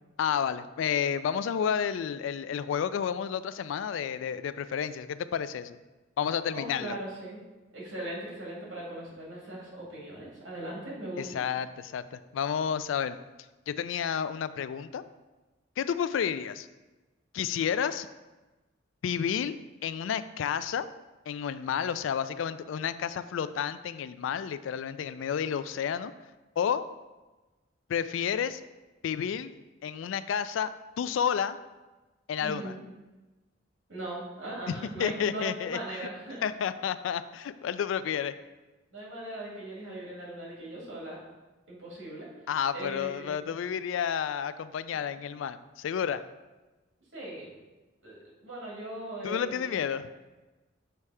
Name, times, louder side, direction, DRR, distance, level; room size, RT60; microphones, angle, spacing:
voice 1, 0.2-5.8 6.2-7.0 11.2-13.2 13.7-15.0 15.8-16.7 17.3-18.1 19.0-19.6 19.8-20.9 21.3-26.1 26.6-26.8 27.9-28.6 29.0-29.5 29.8-30.7 31.0-31.6 32.3-32.7 34.7-34.8 35.0-35.8 36.4-38.3 42.5-46.2 49.2-50.1, left 8 dB, 85° left, 13 dB, 0.3 m, -30 dB
voice 2, 6.5-7.4 7.7-11.4 32.4-32.8 33.9-36.4 38.9-41.2 41.7-42.3 42.7-43.4 47.1-47.5 48.0-49.9, right 1 dB, 90° right, -4 dB, 2.1 m, -39 dB
6.9 x 3.2 x 4.7 m, 1.2 s
head